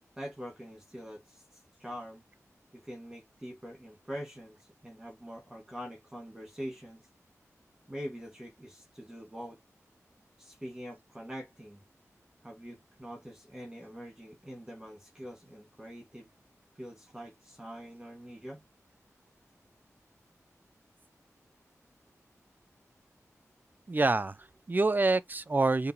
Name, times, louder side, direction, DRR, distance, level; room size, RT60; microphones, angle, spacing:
voice 1, 0.2-2.2 2.7-7.0 7.9-9.6 10.4-11.8 12.4-16.3 16.8-18.6, equal, 10° right, 1.9 m, -44 dB
voice 2, 23.9-25.9, right 3 dB, 35° right, 0.5 m, -27 dB
5.2 x 2.8 x 2.9 m
wide cardioid pair, 65°, 6 cm